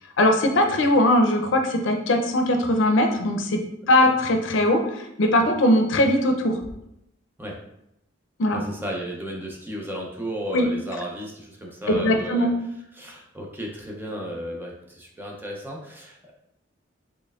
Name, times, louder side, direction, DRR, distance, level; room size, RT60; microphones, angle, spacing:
voice 1, 0.2-6.6 8.4-8.6 10.5-10.7 11.9-12.5, left 1 dB, 80° left, 4 dB, 0.5 m, -20 dB
voice 2, 8.5-12.5 12.9-16.3, equal, 10° right, -2 dB, 0.5 m, -34 dB
4.3 x 3.1 x 2.4 m, 0.81 s
head